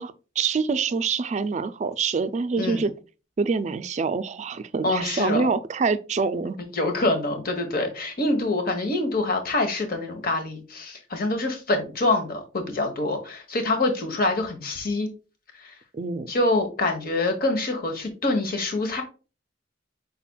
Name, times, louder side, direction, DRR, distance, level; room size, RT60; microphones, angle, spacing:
voice 1, 0.0-2.9 3.4-6.6 15.9-16.3, right 4 dB, 40° right, 0.4 m, -26 dB
voice 2, 4.8-5.5 6.7-15.1 15.6-15.7 16.3-19.0, left 2 dB, 50° left, 1.1 m, -25 dB
5.8 x 4.1 x 2.2 m
head